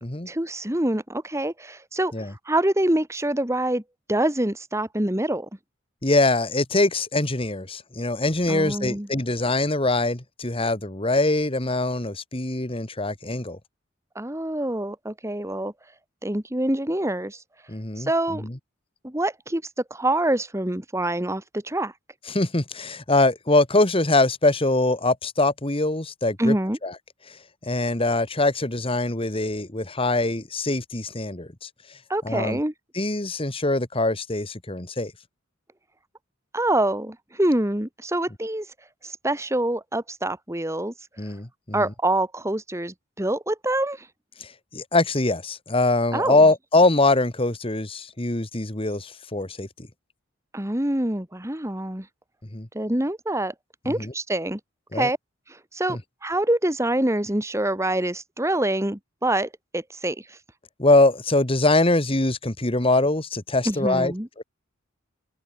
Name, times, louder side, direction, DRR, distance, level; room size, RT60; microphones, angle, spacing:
voice 1, 0.3-2.1 2.5-3.8 4.1-5.5 8.5-9.1 14.2-15.7 16.2-17.4 18.0-18.5 19.0-19.6 19.9-21.9 26.4-26.8 32.1-32.7 36.5-38.7 39.0-40.9 41.7-44.1 46.1-46.4 50.5-52.1 52.7-53.5 53.9-54.6 54.9-55.2 55.5-56.0 56.2-60.4 63.7-64.3, right 1 dB, 15° right, 1.9 m, -25 dB
voice 2, 6.0-13.6 17.7-18.1 18.4-18.6 22.3-26.5 26.8-26.9 27.3-27.4 27.6-31.7 32.2-32.6 32.9-35.1 41.2-41.8 44.4-49.7 52.5-52.7 54.0-54.1 54.9-55.1 55.9-56.0 60.8-64.4, left 2 dB, 25° left, 1.9 m, -23 dB
open air
head